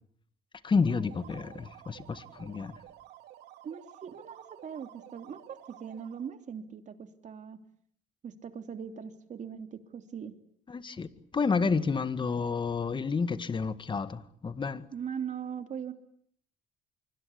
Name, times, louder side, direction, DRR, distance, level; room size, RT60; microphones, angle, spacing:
voice 1, 0.6-2.8 10.7-14.9, left 5 dB, 30° left, 12 dB, 1.9 m, -30 dB
sound 1, 0.6-6.3, right 13 dB, 85° right, 2.4 m, -52 dB
voice 2, 3.6-7.6 8.2-10.3 14.9-15.9, right 7 dB, 45° right, 7 dB, 3.1 m, -40 dB
25.0 x 24.0 x 8.6 m, 0.66 s
cardioid pair, 110°, 17 cm